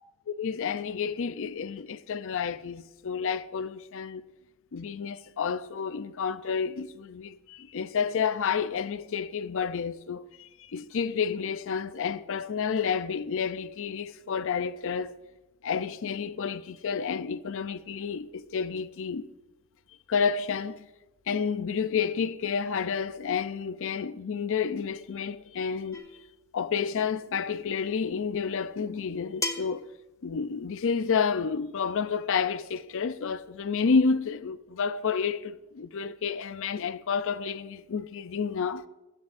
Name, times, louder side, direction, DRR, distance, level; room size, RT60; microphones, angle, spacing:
voice 1, 0.3-4.2 4.7-15.2 15.6-19.3 20.1-20.8 21.3-26.0 26.5-29.8 30.2-38.8, left 6 dB, 60° left, 0.5 m, -30 dB
sound 1, 25.9-26.3 27.8-27.9 29.4-29.9, left 2 dB, 15° left, 0.9 m, -34 dB
19.0 x 16.5 x 2.6 m
head